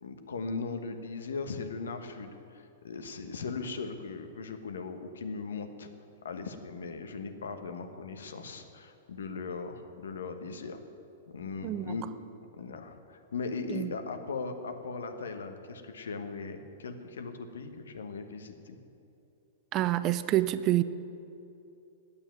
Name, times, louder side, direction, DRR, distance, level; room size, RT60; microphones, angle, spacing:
voice 1, 0.0-5.9 6.2-10.8 11.3-12.1 12.6-18.8, left 4 dB, 80° left, 7 dB, 1.1 m, -38 dB
voice 2, 19.7-20.8, right 14 dB, 35° right, 14 dB, 0.4 m, -27 dB
9.7 x 8.7 x 9.3 m, 2.8 s
hypercardioid pair, 115°, 0 cm